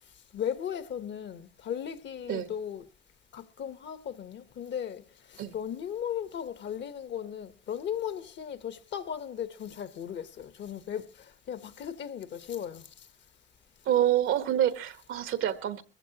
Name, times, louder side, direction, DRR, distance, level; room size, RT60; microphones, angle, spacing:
voice 1, 0.3-2.9 3.3-5.0 5.3-12.9, left 9 dB, 65° left, 1.0 m, -36 dB
voice 2, 13.8-15.8, right 11 dB, 90° right, 1.2 m, -27 dB
21.0 x 15.5 x 2.9 m
cardioid pair, 90°, 20 cm